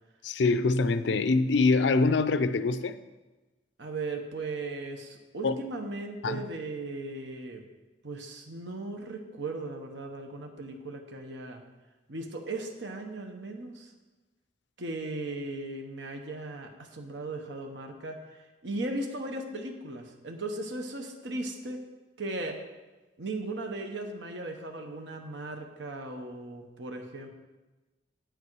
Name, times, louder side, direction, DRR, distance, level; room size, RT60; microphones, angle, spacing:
voice 1, 0.2-3.0 5.4-5.6 6.2-6.4, left 3 dB, 75° left, 0.5 m, -24 dB
voice 2, 3.8-7.6 8.0-11.6 12.1-13.9 14.8-21.8 22.2-22.6 23.2-27.3, right 2 dB, 80° right, 1.0 m, -37 dB
8.9 x 8.2 x 4.6 m
head